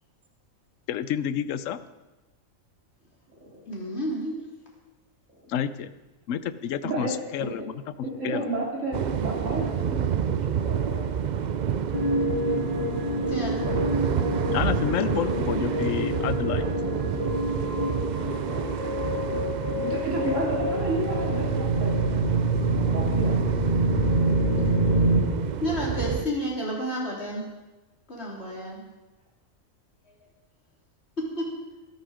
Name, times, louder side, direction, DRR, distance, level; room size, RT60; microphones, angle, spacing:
voice 1, 0.9-1.8 5.5-5.9 6.3-7.7 8.2-8.5 14.5-16.7, left 9 dB, 70° left, 14 dB, 1.0 m, -29 dB
voice 2, 3.7-4.4 13.2-13.8 25.6-27.5 28.1-28.8 31.2-31.5, equal, 50° left, -3 dB, 3.7 m, -31 dB
voice 3, 6.8-7.5 8.0-11.1 14.9-15.8 18.1-18.9 19.8-22.4 22.7-23.4, right 1 dB, 65° right, -3 dB, 3.6 m, -32 dB
sound 1, 8.9-26.3, right 8 dB, 80° right, 0.4 m, -29 dB
sound 2, 11.9-25.2, right 1 dB, 25° right, 2.1 m, -26 dB
13.5 x 13.0 x 5.0 m, 1.1 s
omnidirectional pair, 1.4 m